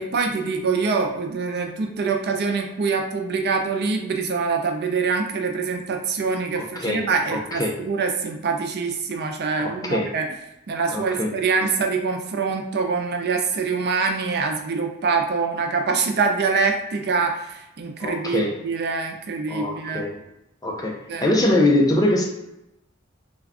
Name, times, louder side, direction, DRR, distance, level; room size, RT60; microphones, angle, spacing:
voice 1, 0.0-10.3 10.7-20.0 21.1-21.3, right 4 dB, 50° right, 3 dB, 0.4 m, -24 dB
voice 2, 6.6-7.8 9.6-10.1 10.9-11.3 18.0-18.6 19.5-20.2 20.6-22.2, left 1 dB, 20° left, 0 dB, 0.5 m, -23 dB
2.4 x 2.3 x 3.4 m, 0.87 s
head